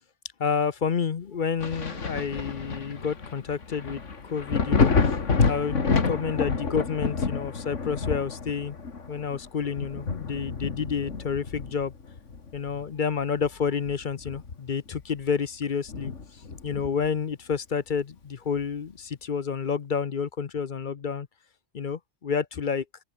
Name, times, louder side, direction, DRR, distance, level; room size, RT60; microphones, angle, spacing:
voice 1, 0.4-4.9 5.5-8.8 9.1-11.9 12.5-16.1 16.6-21.3 21.7-22.8, left 6 dB, 45° left, 0.8 m, -29 dB
Thunder, 1.6-12.9 13.4-14.9 15.2-15.3 15.9-17.2 18.6-18.7, left 4 dB, 65° left, 2.4 m, -29 dB
open air
omnidirectional pair, 1.4 m